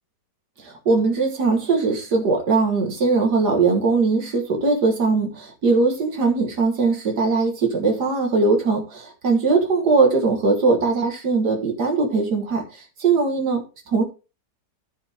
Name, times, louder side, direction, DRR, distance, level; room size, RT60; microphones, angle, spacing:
voice 1, 0.6-14.0, right 4 dB, 75° right, 3 dB, 2.1 m, -20 dB
13.5 x 5.0 x 3.5 m, 0.31 s
omnidirectional pair, 1.8 m